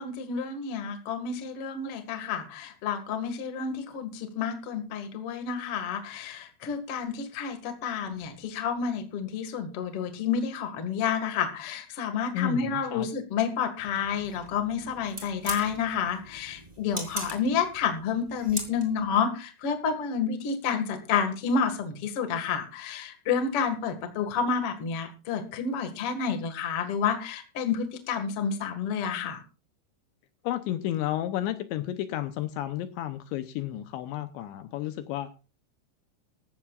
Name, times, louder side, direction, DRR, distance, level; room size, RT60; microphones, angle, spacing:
voice 1, 0.0-29.4, left 6 dB, 60° left, 7 dB, 1.5 m, -30 dB
voice 2, 12.3-13.1 30.4-35.3, left 13 dB, 80° left, 10 dB, 2.8 m, -32 dB
sound 1, 13.8-19.1, right 1 dB, 10° right, 2.3 m, -41 dB
18.5 x 14.5 x 2.4 m, 0.33 s
omnidirectional pair, 5.7 m